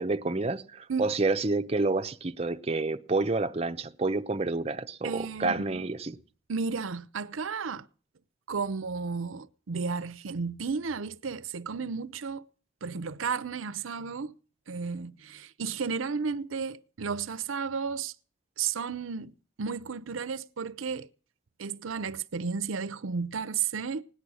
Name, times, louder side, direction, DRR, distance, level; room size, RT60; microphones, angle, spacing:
voice 1, 0.0-6.2, right 3 dB, 30° right, 0.7 m, -29 dB
voice 2, 5.0-5.9 6.5-7.9 8.5-12.5 12.8-14.3 14.7-18.1 18.6-21.1 21.6-24.0, right 5 dB, 85° right, 0.7 m, -33 dB
17.5 x 10.0 x 6.2 m
head